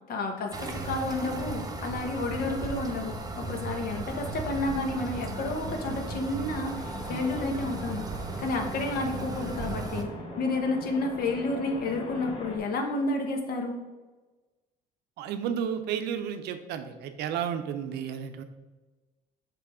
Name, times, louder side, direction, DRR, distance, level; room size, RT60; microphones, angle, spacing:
voice 1, 0.1-8.0 8.4-10.1 10.4-13.8, left 2 dB, 65° left, 4 dB, 1.1 m, -31 dB
sound 1, 0.5-10.0, right 3 dB, 20° right, 0.7 m, -36 dB
sound 2, 4.1-12.6, left 1 dB, 30° left, 1.2 m, -42 dB
voice 2, 15.2-18.4, right 8 dB, 80° right, 9 dB, 0.6 m, -32 dB
5.8 x 3.5 x 4.8 m, 1.2 s
cardioid pair, 110°, 17 cm